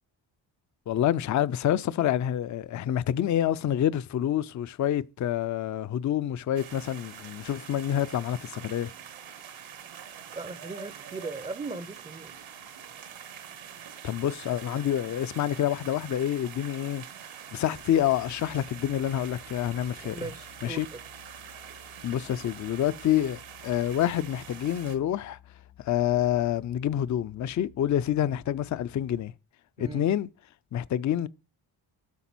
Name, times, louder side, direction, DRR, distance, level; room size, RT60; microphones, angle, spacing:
voice 1, 0.9-8.9 14.0-17.0 17.5-20.3 20.6-20.9 22.0-25.4 25.8-29.3 29.8-30.3 30.7-31.3, left 11 dB, 40° left, 0.4 m, -27 dB
sound 1, 6.5-25.0, right 8 dB, 80° right, 1.3 m, -45 dB
voice 2, 10.3-12.4 20.0-21.0 29.8-30.1, right 3 dB, 15° right, 0.5 m, -38 dB
sound 2, 17.7-29.2, left 11 dB, 75° left, 2.3 m, -55 dB
8.4 x 4.9 x 6.0 m
cardioid pair, 105°, 47 cm